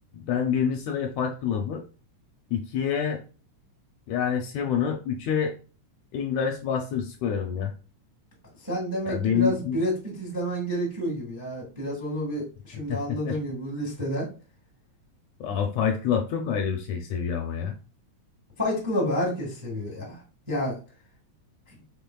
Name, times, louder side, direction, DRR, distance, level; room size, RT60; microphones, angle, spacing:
voice 1, 0.1-1.8 2.5-3.2 4.1-5.5 6.1-7.7 9.1-9.8 12.9-13.0 13.2-13.4 15.4-17.8, left 7 dB, 75° left, 3 dB, 1.7 m, -27 dB
voice 2, 8.6-14.3 18.6-20.2 20.5-20.7, equal, 15° right, -2 dB, 0.8 m, -29 dB
5.6 x 4.1 x 2.3 m, 0.36 s
omnidirectional pair, 3.5 m